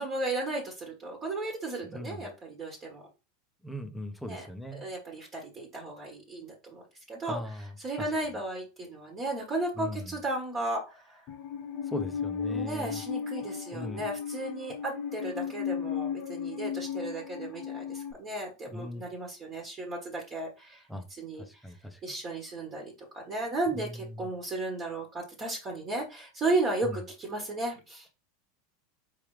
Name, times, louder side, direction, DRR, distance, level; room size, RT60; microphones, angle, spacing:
voice 1, 0.0-3.0 4.3-6.8 7.1-7.4 7.8-11.2 12.5-20.9 21.2-21.4 22.0-28.1, right 2 dB, 30° right, 0 dB, 1.5 m, -34 dB
voice 2, 1.8-2.3 3.6-4.8 7.3-8.1 9.8-10.2 11.8-13.0 13.7-14.0 18.7-19.0 20.9-21.1 21.4-22.0 23.7-24.3 26.8-27.0, left 1 dB, ahead, 4 dB, 0.8 m, -39 dB
Musical instrument, 11.3-18.1, left 7 dB, 45° left, 1.0 m, -35 dB
4.7 x 3.4 x 3.2 m, 0.29 s
supercardioid pair, 125°, 0 cm